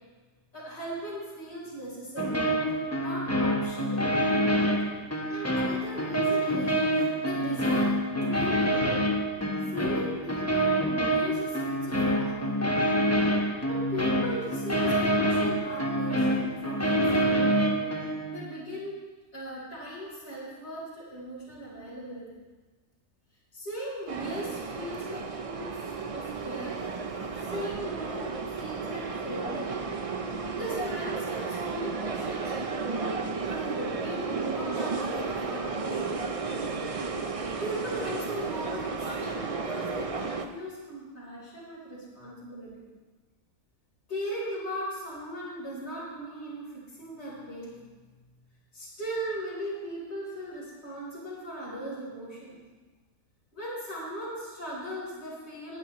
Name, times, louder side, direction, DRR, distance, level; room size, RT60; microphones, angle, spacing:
voice 1, 0.5-2.4 3.0-4.1 5.3-9.1 9.4-12.7 13.7-19.0 19.3-22.3 23.5-26.8 27.4-29.8 30.3-36.3 37.6-42.8 44.1-47.8 48.7-52.6 53.5-55.8, equal, 40° left, -8 dB, 4.1 m, -38 dB
sound 1, 2.2-18.4, equal, 10° left, 0.9 m, -26 dB
sound 2, 24.1-40.5, right 4 dB, 50° right, 0.4 m, -33 dB
20.5 x 10.5 x 3.1 m, 1.3 s
omnidirectional pair, 1.7 m